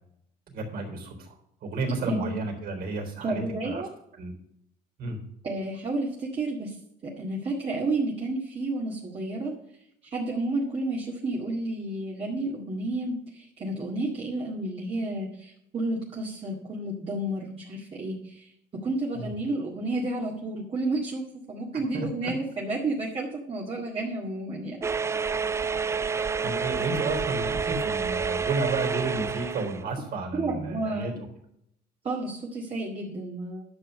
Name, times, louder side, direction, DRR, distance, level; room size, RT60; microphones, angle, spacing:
voice 1, 0.5-3.8 4.2-4.3 5.0-5.2 19.2-19.3 21.7-22.3 26.4-31.1, right 3 dB, 60° right, 3 dB, 3.8 m, -32 dB
voice 2, 3.2-3.9 5.4-6.8 7.0-9.5 10.0-18.5 18.8-24.8 25.0-25.1 30.4-31.2 32.0-33.6, right 2 dB, 35° right, -2 dB, 2.0 m, -31 dB
sound 1, 24.8-29.8, right 5 dB, 15° right, 0.4 m, -29 dB
10.5 x 6.2 x 6.4 m, 0.73 s
cardioid pair, 110°, 17 cm